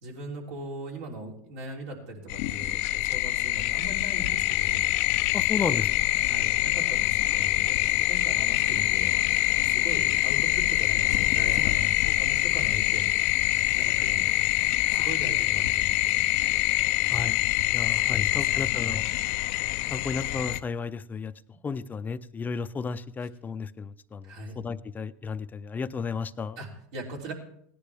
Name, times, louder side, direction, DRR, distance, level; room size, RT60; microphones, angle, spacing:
voice 1, 0.0-4.9 5.7-5.8 6.2-9.2 9.6-13.1 13.7-14.2 14.9-16.2 17.0-17.1 17.8-19.0 24.2-24.6 26.6-27.3, right 1 dB, 70° right, 0 dB, 3.2 m, -39 dB
sound 1, 2.3-20.6, left 18 dB, 70° left, 0.5 m, -25 dB
voice 2, 5.3-5.9 17.1-17.4 17.7-19.1 19.9-21.3 21.6-26.6, left 5 dB, 20° left, 13 dB, 0.5 m, -33 dB
17.0 x 10.0 x 3.4 m, 0.70 s
supercardioid pair, 100°, 8 cm